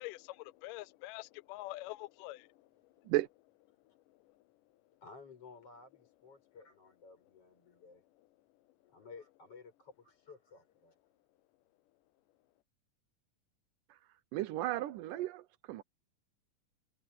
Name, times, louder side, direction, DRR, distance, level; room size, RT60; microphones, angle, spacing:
voice 1, 0.0-3.1 4.1-4.3, left 19 dB, 85° left, 2.2 m, -46 dB
voice 2, 5.0-8.0 8.9-11.0, left 4 dB, 45° left, 8.0 m, -55 dB
voice 3, 14.3-15.8, right 16 dB, 85° right, 2.4 m, -34 dB
omnidirectional pair, 3.7 m